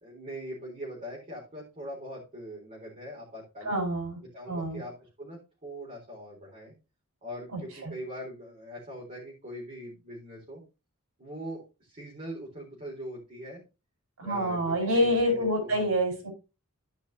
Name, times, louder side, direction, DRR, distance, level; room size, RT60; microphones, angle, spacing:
voice 1, 0.0-3.8 4.2-6.7 7.2-10.6 11.2-13.6 14.2-15.9, equal, 35° right, -4 dB, 4.0 m, -42 dB
voice 2, 3.6-4.2 4.5-4.8 7.5-7.9 14.2-16.3, equal, 90° right, 3 dB, 4.7 m, -27 dB
15.0 x 5.3 x 2.8 m, 0.28 s
head